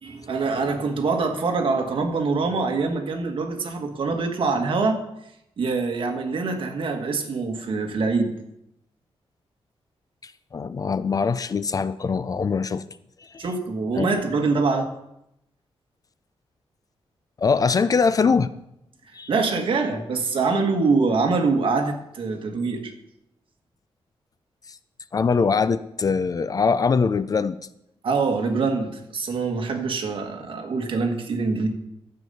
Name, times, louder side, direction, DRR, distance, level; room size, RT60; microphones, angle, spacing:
voice 1, 0.0-5.0 5.6-8.3 13.4-14.9 19.3-22.9 28.0-31.7, right 4 dB, 55° right, 4 dB, 1.6 m, -24 dB
voice 2, 10.2-12.8 13.2-13.5 13.9-14.1 17.4-18.5 19.1-19.3 24.7-24.8 25.1-27.6, left 5 dB, 35° left, 14 dB, 0.4 m, -22 dB
12.0 x 8.1 x 5.5 m, 0.81 s
wide cardioid pair, 165°, 10 cm